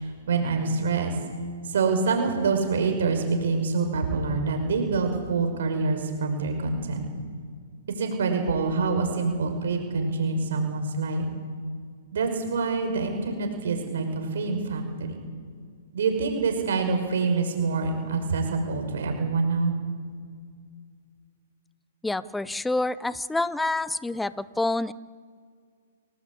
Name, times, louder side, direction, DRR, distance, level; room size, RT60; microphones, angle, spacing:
voice 1, 0.3-1.2 1.7-7.1 8.0-11.3 12.1-15.2 15.9-19.8, right 4 dB, 75° right, 5 dB, 5.6 m, -26 dB
voice 2, 22.0-24.9, left 2 dB, 5° left, 17 dB, 0.7 m, -27 dB
28.5 x 19.0 x 8.7 m, 2.1 s
hypercardioid pair, 145°, 0 cm